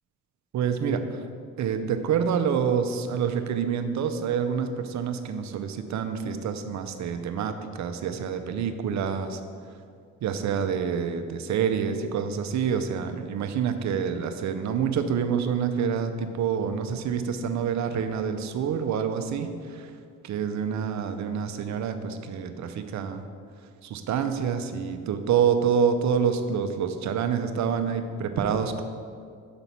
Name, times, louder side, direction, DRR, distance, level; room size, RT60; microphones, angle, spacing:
voice 1, 0.5-1.2 1.6-9.4 10.2-19.9 20.2-23.2 23.8-28.8, right 7 dB, 60° right, 8 dB, 0.6 m, -27 dB
6.1 x 3.9 x 5.7 m, 2.2 s
supercardioid pair, 65°, 33 cm